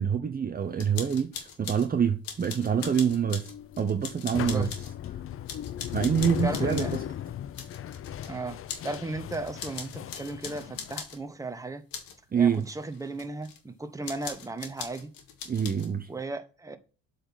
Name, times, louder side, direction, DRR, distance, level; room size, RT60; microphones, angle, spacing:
voice 1, 0.0-3.5 3.8-4.7 5.9-7.0 12.3-12.7 15.5-16.1, right 7 dB, 25° right, 0.7 m, -26 dB
sound 1, 0.8-1.9 2.2-4.9 5.5-7.0 7.5-8.3 8.7-9.0 9.3-11.2 11.9-12.2 12.5-13.6 14.0-15.9, left 7 dB, 80° left, 1.8 m, -41 dB
sound 2, 2.6-11.0, left 10 dB, 40° left, 0.5 m, -37 dB
voice 2, 4.3-4.7 6.4-7.0 8.3-8.6 8.8-11.8 12.3-15.1 16.1-16.8, right 2 dB, 10° right, 1.0 m, -35 dB
7.8 x 4.2 x 5.6 m
cardioid pair, 95°, 34 cm